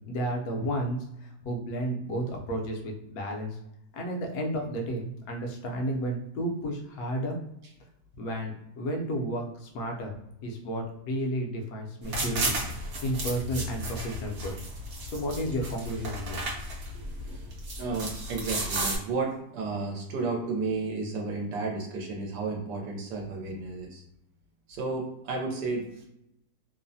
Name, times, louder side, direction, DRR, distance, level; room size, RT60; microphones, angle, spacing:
voice 1, 0.1-3.6 3.9-7.4 8.2-10.1 10.4-12.6 13.0-14.5 15.0-16.7, equal, 70° left, 1 dB, 1.0 m, -32 dB
sound 1, 12.0-19.0, right 1 dB, 55° right, 0.9 m, -34 dB
voice 2, 17.8-24.0 24.7-26.1, right 3 dB, 85° right, 0 dB, 1.2 m, -32 dB
3.0 x 2.0 x 2.6 m, 0.81 s
omnidirectional pair, 1.8 m